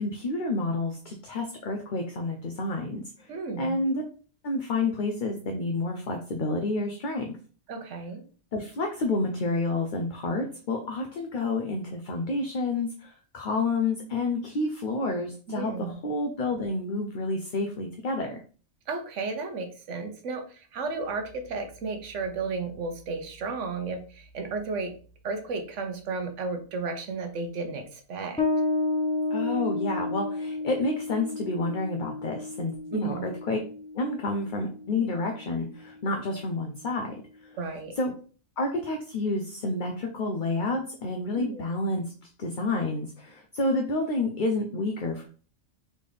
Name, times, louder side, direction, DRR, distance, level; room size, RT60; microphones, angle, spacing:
voice 1, 0.0-3.3 3.6-4.0 4.4-7.4 8.5-18.4 29.3-33.6 33.9-37.2 38.0-38.1 38.6-42.0 42.4-45.3, left 2 dB, 50° left, 3 dB, 0.7 m, -29 dB
voice 2, 3.3-3.8 7.7-8.2 15.5-16.0 18.9-24.9 25.2-28.4 32.9-33.3 37.6-37.9 41.3-41.6, right 4 dB, 90° right, 6 dB, 1.2 m, -33 dB
Bass guitar, 28.4-35.5, left 3 dB, 5° left, 0.7 m, -31 dB
4.2 x 3.6 x 3.3 m, 0.40 s
omnidirectional pair, 1.2 m